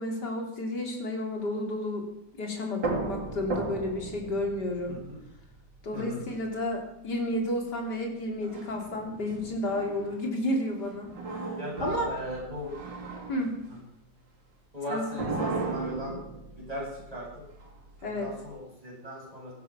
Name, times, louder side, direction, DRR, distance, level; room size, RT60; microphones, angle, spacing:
voice 1, 0.0-2.1 2.4-5.0 5.8-11.5 11.8-12.1 13.3-13.6 14.9-15.5 18.0-18.3, left 1 dB, 65° left, 1 dB, 3.8 m, -31 dB
sound 1, 2.8-6.2 8.4-10.4 10.8-13.8 15.1-18.5, right 3 dB, 85° right, 3.5 m, -37 dB
voice 2, 11.6-12.7 14.7-16.1 16.6-17.3 18.1-19.5, equal, 20° right, -4 dB, 8.3 m, -37 dB
17.0 x 13.5 x 6.0 m, 0.83 s
omnidirectional pair, 1.9 m